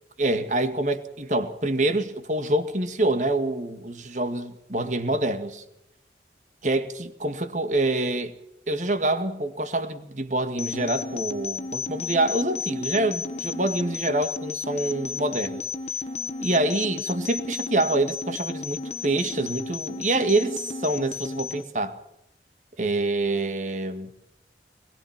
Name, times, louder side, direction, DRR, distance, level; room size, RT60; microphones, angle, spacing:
voice 1, 0.2-5.6 6.6-8.3 8.7-15.7 16.4-22.0 22.8-24.1, right 2 dB, 45° right, 2.1 m, -26 dB
sound 1, 10.6-21.6, left 5 dB, 35° left, 1.5 m, -33 dB
23.5 x 21.5 x 5.9 m
head